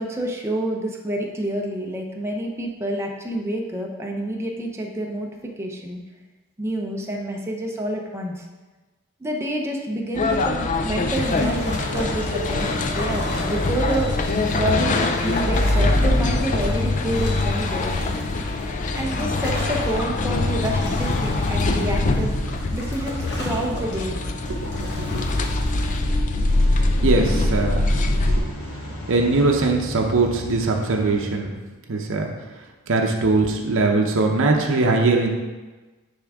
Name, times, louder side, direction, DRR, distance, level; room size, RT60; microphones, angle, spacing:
voice 1, 0.0-6.0 6.6-8.5 9.2-14.1 14.5-18.2 18.9-22.3 22.7-24.2, right 1 dB, 10° right, 0 dB, 0.7 m, -28 dB
sound 1, 10.1-28.4, left 2 dB, 35° left, 0.4 m, -23 dB
sound 2, 11.0-26.0, left 1 dB, 55° left, 1.3 m, -35 dB
sound 3, 20.2-31.2, equal, 70° left, 1.2 m, -35 dB
voice 2, 24.5-25.3 26.7-28.4 29.1-31.5 31.9-32.3 32.9-35.3, right 3 dB, 60° right, 1 dB, 0.7 m, -21 dB
9.6 x 3.6 x 3.5 m, 1.2 s
head